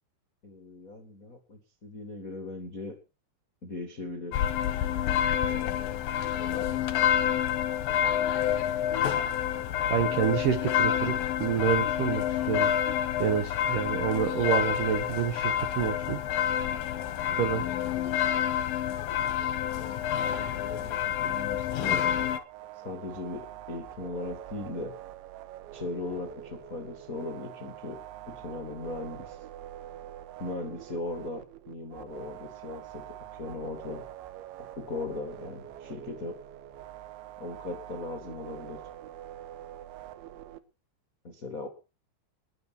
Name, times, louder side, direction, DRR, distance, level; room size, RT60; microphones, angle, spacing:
voice 1, 0.4-3.0 3.6-4.5 5.5-6.0 6.4-9.1 17.7-17.8 19.6-22.0 22.8-25.0 25.7-29.4 30.4-33.0 33.3-34.1 34.7-36.4 37.4-38.8 41.2-41.7, left 2 dB, 45° left, 5 dB, 1.1 m, -39 dB
sound 1, 4.3-22.4, left 10 dB, 70° left, 2.3 m, -28 dB
voice 2, 9.9-12.7 13.2-16.2 17.4-17.6, right 9 dB, 70° right, 9 dB, 2.1 m, -28 dB
sound 2, 22.3-40.6, right 12 dB, 85° right, 3.4 m, -45 dB
20.5 x 7.9 x 5.8 m, 0.33 s
omnidirectional pair, 5.3 m